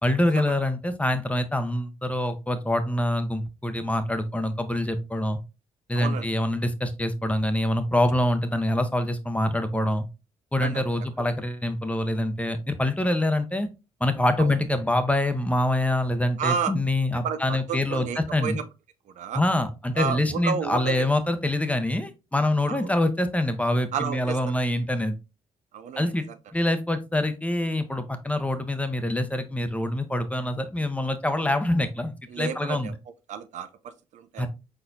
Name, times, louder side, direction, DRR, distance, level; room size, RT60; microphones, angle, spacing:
voice 1, 0.0-5.4 5.9-10.1 10.5-13.7 14.0-18.6 19.3-25.1 26.0-26.2 26.5-32.9 34.4-34.5, left 1 dB, 10° left, 0.8 m, -25 dB
voice 2, 5.9-6.3 10.6-10.8 14.4-14.5 16.4-16.7 17.2-18.6 19.1-19.4 19.9-21.1 22.7-22.9 23.9-24.4 25.7-26.4 32.3-32.9 33.3-34.5, right 7 dB, 65° right, 0.5 m, -31 dB
4.4 x 4.2 x 2.6 m
supercardioid pair, 60°, 13 cm